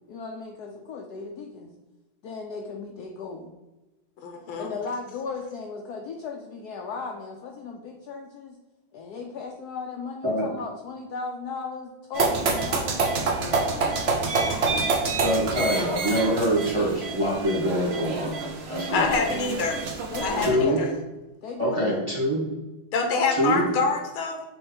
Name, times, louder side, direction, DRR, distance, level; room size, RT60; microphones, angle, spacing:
voice 1, 0.1-1.7 2.2-3.5 4.6-8.6 8.9-13.0 13.3-13.9 18.9-19.4 20.1-20.9 21.4-22.1, left 5 dB, 70° left, 2 dB, 1.0 m, -36 dB
voice 2, 4.2-4.7 18.9-19.8 20.2-20.9 22.9-24.4, left 4 dB, 90° left, 3 dB, 1.8 m, -26 dB
sound 1, 12.1-20.5, right 3 dB, 70° right, 0.6 m, -27 dB
voice 3, 15.2-19.1 20.4-20.8 21.6-22.4 23.4-23.6, equal, 15° right, -3 dB, 1.2 m, -25 dB
6.4 x 3.1 x 4.9 m, 1.1 s
omnidirectional pair, 2.2 m